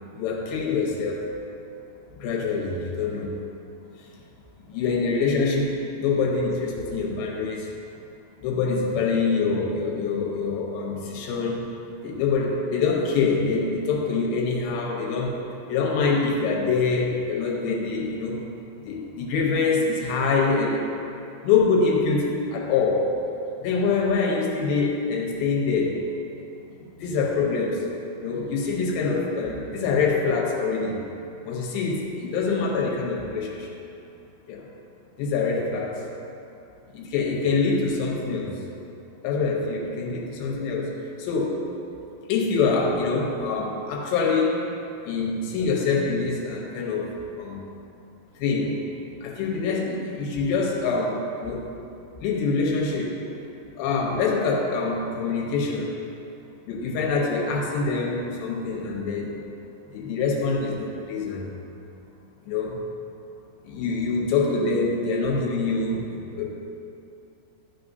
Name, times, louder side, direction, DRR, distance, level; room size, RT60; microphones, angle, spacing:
voice 1, 0.2-1.2 2.2-3.3 4.7-5.7 6.0-7.7 8.4-11.6 12.0-15.4 15.7-18.4 18.8-20.9 21.4-23.1 23.6-26.0 26.8-27.8 28.2-31.0 31.4-33.7 34.5-34.6 35.2-35.9 36.9-38.6 39.2-40.9 41.2-41.5 42.3-44.6 45.1-47.1 47.4-47.6 48.4-48.8 49.2-51.6 52.2-53.2 53.8-55.9 56.7-59.3 59.9-61.4 62.5-62.8 63.6-66.5, left 4 dB, 80° left, -2 dB, 3.0 m, -25 dB
11.0 x 6.4 x 2.7 m, 2.7 s
omnidirectional pair, 5.1 m